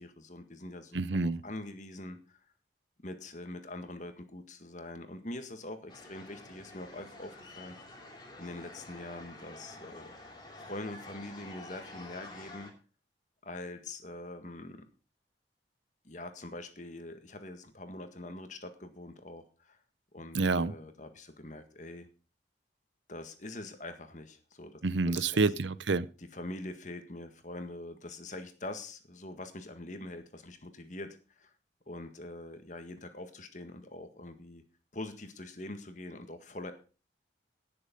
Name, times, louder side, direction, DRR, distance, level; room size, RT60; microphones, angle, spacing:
voice 1, 0.0-2.4 3.0-7.8 8.4-10.1 10.6-12.7 13.4-14.8 16.0-19.8 20.1-22.1 23.1-24.8 25.1-25.3 26.2-31.5 31.9-34.6 34.9-36.7, left 2 dB, 40° left, 8 dB, 1.7 m, -44 dB
voice 2, 0.9-1.4 20.3-20.7 24.8-26.1, right 3 dB, 75° right, 17 dB, 0.7 m, -28 dB
sound 1, 5.9-12.7, left 2 dB, 25° left, 2.9 m, -49 dB
17.5 x 7.0 x 5.3 m, 0.36 s
head